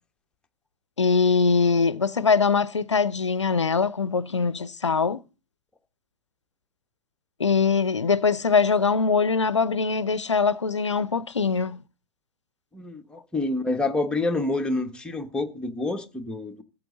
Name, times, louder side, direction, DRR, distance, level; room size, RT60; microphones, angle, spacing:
voice 1, 1.0-5.2 7.4-11.8, left 5 dB, 80° left, 0.6 m, -22 dB
voice 2, 12.7-16.6, left 2 dB, 5° left, 1.2 m, -28 dB
14.5 x 8.4 x 4.0 m
figure-of-eight pair, 100°, 15 cm